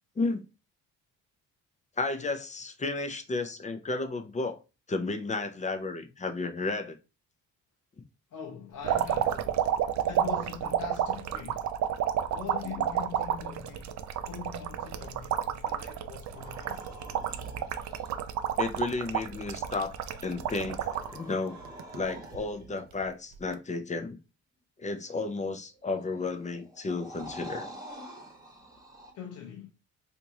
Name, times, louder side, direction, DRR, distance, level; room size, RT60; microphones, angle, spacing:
voice 1, 2.0-4.6 4.9-7.0 18.6-20.9 21.1-21.6 21.9-24.2 24.8-27.7, left 3 dB, 25° left, 0.6 m, -33 dB
voice 2, 8.3-9.5 10.0-11.7 12.3-13.9 14.2-16.9 29.1-29.7, left 8 dB, 75° left, 0.8 m, -42 dB
sound 1, 8.8-21.2 21.6-22.4 23.4-23.5, right 10 dB, 65° right, 0.5 m, -30 dB
sound 2, 16.3-18.1 19.7-22.9 25.7-29.1, right 1 dB, 10° right, 1.2 m, -46 dB
3.4 x 2.7 x 2.8 m
cardioid pair, 90°, 30 cm